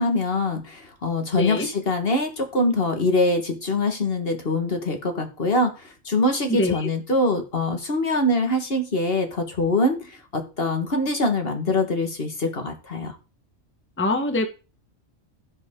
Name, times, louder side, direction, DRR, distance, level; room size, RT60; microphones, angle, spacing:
voice 1, 0.0-13.2, left 2 dB, 45° left, 5 dB, 1.8 m, -24 dB
voice 2, 1.3-1.7 6.5-6.9 14.0-14.5, left 1 dB, 10° left, 6 dB, 1.1 m, -24 dB
15.5 x 5.6 x 3.7 m, 0.32 s
omnidirectional pair, 1.4 m